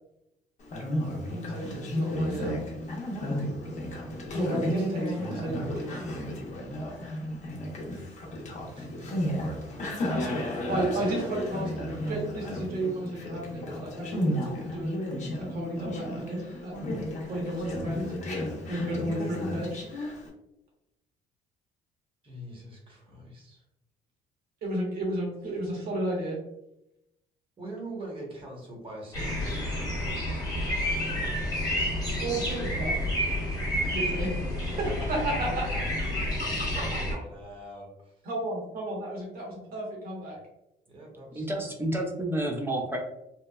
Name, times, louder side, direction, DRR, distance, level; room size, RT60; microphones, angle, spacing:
Conversation, 0.6-20.3, equal, 45° left, 0.7 m, -33 dB
voice 1, 1.3-2.6 4.3-6.0 10.7-14.9 15.4-16.7 17.3-18.1 18.6-19.8 24.6-26.4 32.2-33.0 33.9-34.3 34.8-35.6 36.4-36.5 36.7-37.2 38.2-40.4, right 1 dB, 60° right, -2 dB, 1.1 m, -32 dB
voice 2, 8.7-9.3 11.0-11.1 22.2-23.6 27.6-30.3 34.7-35.8 36.7-38.1 40.9-41.7, right 1 dB, 30° right, -1 dB, 0.9 m, -43 dB
sound 1, 29.1-37.1, left 1 dB, 20° left, 1.0 m, -30 dB
voice 3, 41.4-43.0, right 1 dB, 15° right, 1 dB, 0.5 m, -30 dB
2.9 x 2.1 x 2.2 m, 0.85 s
cardioid pair, 110°, 17 cm